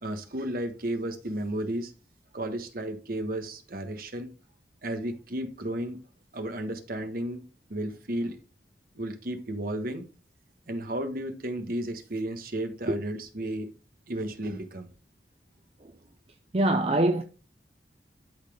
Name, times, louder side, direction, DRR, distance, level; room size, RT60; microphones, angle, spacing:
voice 1, 0.0-1.9 2.3-4.3 4.8-6.0 6.3-7.4 7.7-8.4 8.9-10.0 10.7-13.7 14.1-14.9, right 1 dB, 55° right, 1.2 m, -33 dB
voice 2, 16.5-17.2, right 1 dB, 35° right, 0.6 m, -23 dB
12.0 x 4.1 x 3.6 m
head